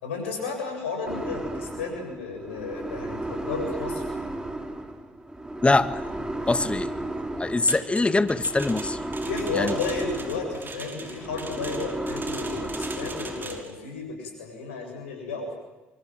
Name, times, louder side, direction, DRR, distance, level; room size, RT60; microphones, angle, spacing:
voice 1, 0.0-4.0 9.2-15.6, left 4 dB, 85° left, 4 dB, 7.8 m, -33 dB
sound 1, 1.1-13.6, right 1 dB, 10° right, 5.0 m, -34 dB
voice 2, 6.5-6.9 7.4-9.0 9.5-9.7, left 2 dB, 20° left, 12 dB, 1.9 m, -23 dB
sound 2, 7.7-13.7, right 3 dB, 30° right, 5.6 m, -41 dB
27.0 x 24.5 x 7.8 m, 1.1 s
hypercardioid pair, 60°, 6 cm